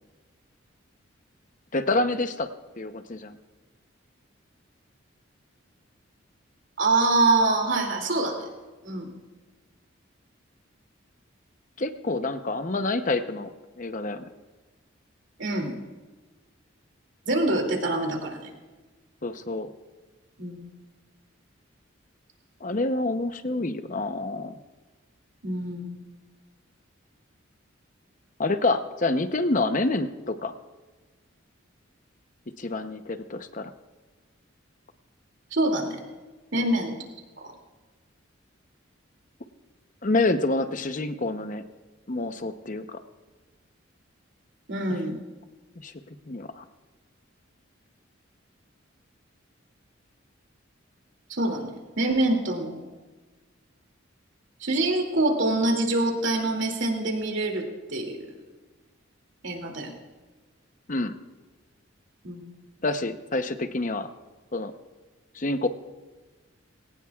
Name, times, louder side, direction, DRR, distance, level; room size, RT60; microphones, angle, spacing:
voice 1, 1.7-2.5 2.8-3.4 11.8-13.5 13.8-14.3 19.2-19.7 22.6-24.6 28.4-30.5 32.6-33.7 40.0-41.6 42.1-43.0 45.8-45.9 46.3-46.6 60.9-61.1 62.8-64.1 64.5-64.7 65.3-65.7, left 2 dB, 40° left, 9 dB, 0.8 m, -27 dB
voice 2, 6.8-8.5 8.8-9.1 15.4-15.7 17.2-18.5 20.4-20.6 25.4-25.9 35.5-35.9 36.5-36.9 37.4-37.5 44.7-45.2 51.3-52.8 54.6-58.3 59.4-59.9 62.2-62.4, right 2 dB, 65° right, 2 dB, 2.6 m, -25 dB
20.5 x 18.0 x 2.4 m, 1.3 s
head